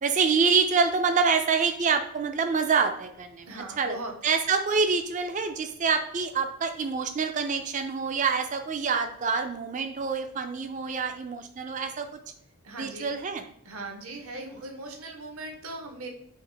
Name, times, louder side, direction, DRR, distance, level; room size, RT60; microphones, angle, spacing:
voice 1, 0.0-4.0 4.2-12.1 12.8-13.4, right 5 dB, 35° right, 7 dB, 0.4 m, -26 dB
voice 2, 3.5-4.1 12.6-13.1 13.6-16.1, right 2 dB, 75° right, 3 dB, 0.9 m, -39 dB
4.7 x 2.4 x 3.3 m, 0.69 s
head